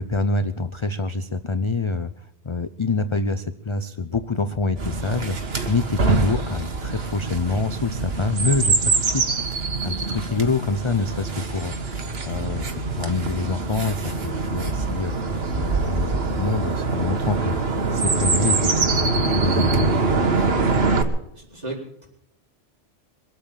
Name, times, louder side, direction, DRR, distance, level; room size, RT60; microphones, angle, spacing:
voice 1, 0.0-9.2 9.8-15.1 15.6-17.6 17.9-20.0, left 3 dB, 35° left, 11 dB, 0.5 m, -26 dB
Chirp tweet, 4.8-21.0, right 4 dB, 55° right, 1.7 m, -24 dB
voice 2, 21.3-22.1, right 2 dB, 35° right, -4 dB, 4.6 m, -34 dB
22.5 x 8.6 x 7.3 m, 0.77 s
omnidirectional pair, 1.3 m